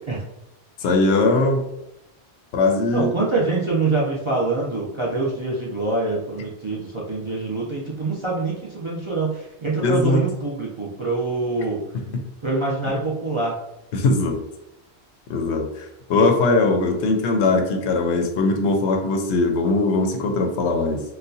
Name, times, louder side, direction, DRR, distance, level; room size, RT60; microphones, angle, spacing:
voice 1, 0.8-1.7 2.5-3.1 9.8-10.3 11.9-12.2 13.9-14.4 15.3-21.0, left 3 dB, 90° left, 4 dB, 0.9 m, -20 dB
voice 2, 2.9-11.8 12.4-13.6, right 3 dB, 45° right, -5 dB, 0.4 m, -25 dB
4.0 x 2.2 x 2.6 m, 0.84 s
omnidirectional pair, 1.1 m